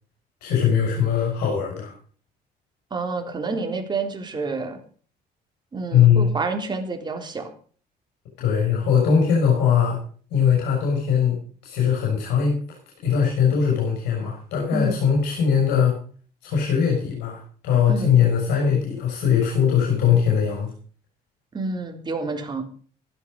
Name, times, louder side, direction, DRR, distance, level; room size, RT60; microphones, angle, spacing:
voice 1, 0.4-1.9 5.9-6.3 8.4-10.0 10.3-12.6 13.0-16.0 16.4-20.7, left 7 dB, 85° left, -1 dB, 6.5 m, -20 dB
voice 2, 2.9-4.8 5.7-7.5 14.7-15.0 17.9-18.2 21.5-22.6, right 3 dB, 25° right, 4 dB, 3.5 m, -28 dB
15.0 x 12.0 x 5.3 m, 0.44 s
cardioid pair, 110°, 17 cm